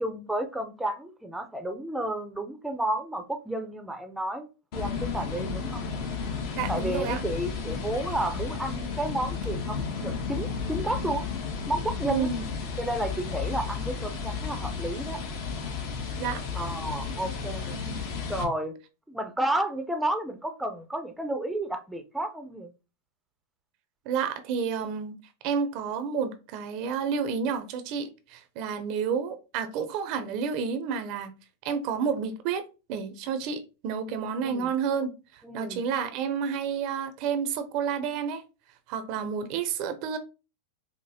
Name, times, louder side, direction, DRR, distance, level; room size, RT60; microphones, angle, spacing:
voice 1, 0.0-4.5 4.7-5.8 6.7-11.3 11.7-12.3 12.8-15.2 16.5-17.7 18.3-18.8 19.1-22.7 34.4-34.7 35.4-35.8, right 1 dB, 5° right, 0.6 m, -31 dB
sound 1, 4.7-18.4, left 5 dB, 55° left, 1.1 m, -33 dB
voice 2, 6.6-7.2 12.1-12.5 16.2-16.4 17.9-18.0 24.1-25.1 25.4-31.3 31.6-32.6 32.9-35.1 35.5-38.4 38.9-40.2, right 6 dB, 50° right, 0.6 m, -30 dB
4.9 x 2.0 x 2.8 m
hypercardioid pair, 115°, 0 cm